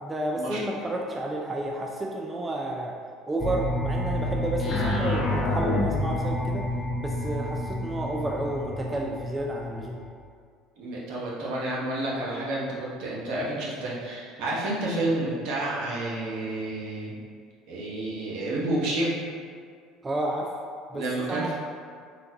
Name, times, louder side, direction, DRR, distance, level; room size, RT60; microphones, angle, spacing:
voice 1, 0.0-2.9 3.3-6.6 7.0-10.0 20.0-20.5 20.9-21.5, right 1 dB, 20° right, -1 dB, 0.3 m, -31 dB
sound 1, 3.4-10.1, left 1 dB, 35° left, 0.6 m, -28 dB
voice 2, 10.8-17.2 17.7-19.2 20.9-21.5, right 2 dB, 70° right, -6 dB, 0.9 m, -30 dB
3.8 x 2.2 x 2.7 m, 2.1 s
supercardioid pair, 85°, 0 cm